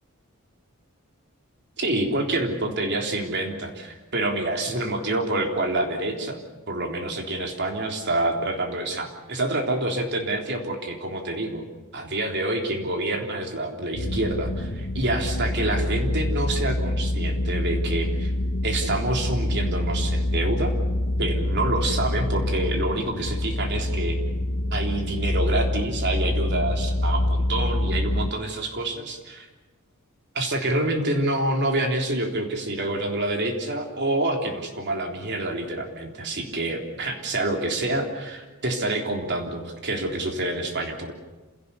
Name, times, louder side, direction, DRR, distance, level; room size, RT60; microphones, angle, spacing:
voice 1, 1.8-6.4 6.7-11.6 11.9-18.3 18.6-20.7 21.2-24.2 24.7-29.5 30.3-41.1, right 2 dB, 55° right, 2 dB, 3.6 m, -27 dB
sound 1, 13.9-28.3, left 1 dB, 60° left, 1.3 m, -26 dB
28.0 x 17.0 x 8.3 m, 1.2 s
head